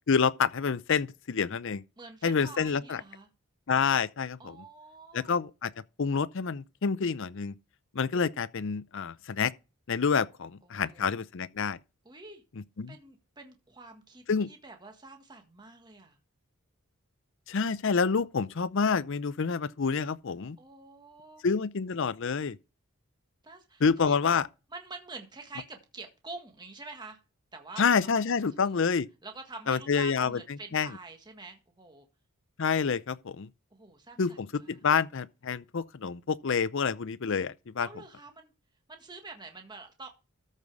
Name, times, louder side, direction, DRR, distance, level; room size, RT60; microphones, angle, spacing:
voice 1, 0.1-1.8 2.2-3.0 3.7-4.6 5.1-5.7 6.0-7.5 7.9-9.5 9.9-11.8 12.8-12.9 14.3-14.5 17.5-20.6 21.4-22.6 23.8-24.4 27.8-29.1 29.7-30.4 30.7-30.9 32.6-33.5 34.2-37.9, left 5 dB, 55° left, 0.5 m, -28 dB
voice 2, 2.0-3.3 4.4-5.3 10.6-11.2 12.0-12.4 12.9-16.2 20.6-21.4 23.4-24.2 24.7-27.2 27.5-28.9 29.2-32.1 33.7-34.8 37.8-38.5 38.9-40.1, right 3 dB, 20° right, 1.6 m, -47 dB
13.5 x 5.4 x 4.8 m
head